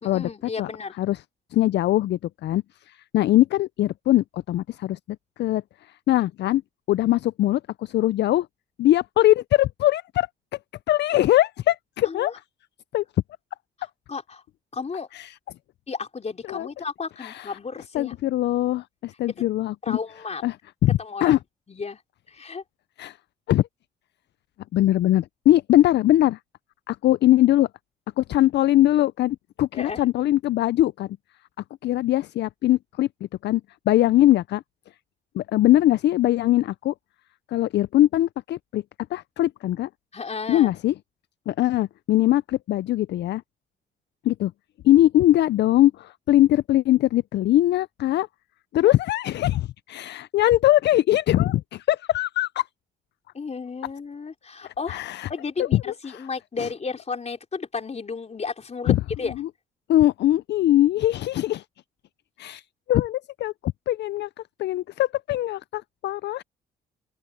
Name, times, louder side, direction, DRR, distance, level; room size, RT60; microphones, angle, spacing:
voice 1, 0.0-0.9 12.0-12.4 14.1-14.4 14.7-15.1 15.9-18.1 19.8-20.4 21.0-21.4 21.7-22.0 22.3-22.6 29.7-30.0 40.1-40.7 48.8-48.9 53.3-58.9 59.2-59.3, left 5 dB, 35° left, 3.9 m, -33 dB
voice 2, 1.5-5.0 5.4-5.6 6.1-6.6 6.9-8.5 8.8-10.3 10.9-12.3 12.9-13.0 15.1-15.3 16.5-16.7 17.2-17.5 17.9-20.0 20.4-20.6 20.8-21.4 23.0-23.2 23.5-23.7 24.7-26.4 26.9-27.7 28.2-31.1 31.8-33.1 33.4-33.6 33.9-34.6 35.3-36.9 37.5-38.8 39.1-39.9 40.5-40.9 41.5-43.4 44.2-44.5 44.8-48.3 48.7-52.7 54.9-55.3 55.6-56.2 56.6-56.7 58.9-59.0 59.4-59.5 59.9-61.6 62.4-62.6 62.9-64.3 64.6-66.4, left 14 dB, 60° left, 0.4 m, -21 dB
open air
cardioid pair, 90°, 20 cm